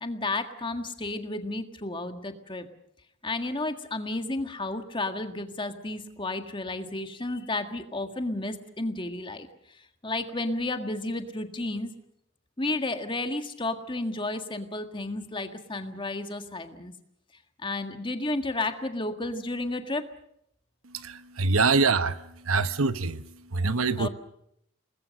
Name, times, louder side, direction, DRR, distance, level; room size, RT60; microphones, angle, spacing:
voice 1, 0.0-2.7 3.2-9.5 10.0-11.9 12.6-16.9 17.6-20.0 24.0-24.1, left 2 dB, 25° left, 1.7 m, -32 dB
voice 2, 21.0-22.2 22.5-23.2 23.5-24.1, right 4 dB, 75° right, 1.0 m, -24 dB
28.0 x 20.5 x 6.5 m
head